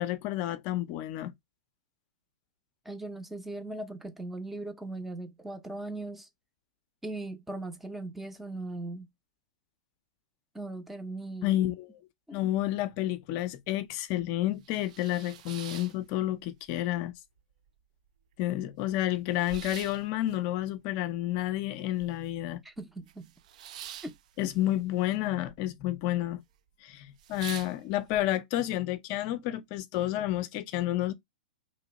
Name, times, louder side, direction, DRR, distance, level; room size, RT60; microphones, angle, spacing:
voice 1, 0.0-1.3 11.4-11.9 12.3-17.1 18.4-22.6 24.4-26.4 26.8-31.1, left 14 dB, 40° left, 0.5 m, -30 dB
voice 2, 2.8-6.3 7.0-9.1 10.5-11.6 12.3-12.4 22.6-23.3 24.0-24.2 24.4-24.5, right 2 dB, 5° right, 0.5 m, -39 dB
sound 1, 13.4-13.5 13.9-14.0 14.4-16.7 17.0-17.7 18.1-18.2 18.3-22.5 22.8-25.6 25.8-26.4 26.7-26.8 27.1-28.2, right 10 dB, 60° right, 0.4 m, -46 dB
3.0 x 2.7 x 4.0 m
hypercardioid pair, 140°, 4 cm